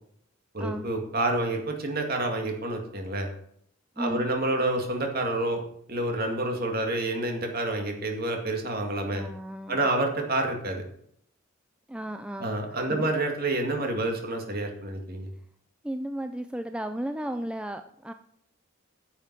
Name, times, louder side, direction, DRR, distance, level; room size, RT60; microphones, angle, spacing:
voice 1, 0.5-3.3 4.0-5.6 5.9-9.3 9.7-10.8 12.4-15.3, right 2 dB, 45° right, 3 dB, 2.1 m, -28 dB
voice 2, 4.0-4.3 9.1-9.9 11.9-13.1 15.8-18.1, right 1 dB, 5° right, 7 dB, 0.4 m, -35 dB
10.0 x 7.1 x 6.0 m, 0.68 s
head